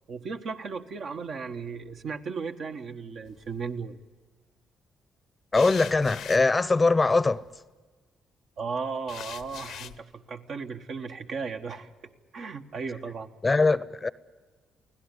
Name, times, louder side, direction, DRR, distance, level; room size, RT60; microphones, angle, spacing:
voice 1, 0.1-4.0 8.6-11.9 12.3-13.3, right 5 dB, 60° right, 1.5 m, -35 dB
sound 1, 3.3-3.8 5.5-7.6 9.1-10.0, left 10 dB, 80° left, 0.7 m, -43 dB
voice 2, 5.5-7.4 13.4-14.1, left 3 dB, 20° left, 0.7 m, -22 dB
24.0 x 16.5 x 9.9 m
cardioid pair, 90°, 0 cm